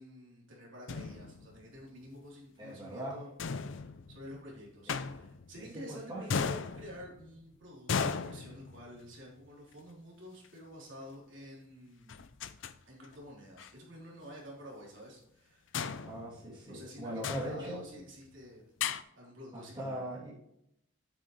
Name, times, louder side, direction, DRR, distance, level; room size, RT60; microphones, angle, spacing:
voice 1, 0.0-3.3 3.6-12.2 12.8-15.8 16.7-18.6 19.1-20.0, equal, 70° right, -3 dB, 3.5 m, -49 dB
sound 1, 0.9-1.7 3.4-4.4 4.9-5.8 6.3-7.4 7.9-9.2 10.4-10.5 12.1-12.7 13.0-13.2 13.6-13.7 15.7-16.9 17.2-18.1 18.8-19.0, left 5 dB, 65° left, 0.5 m, -37 dB
voice 2, 2.6-3.2 5.6-6.4 16.0-17.8 19.5-20.3, right 1 dB, 20° right, -7 dB, 2.8 m, -40 dB
9.1 x 8.9 x 3.2 m, 0.76 s
head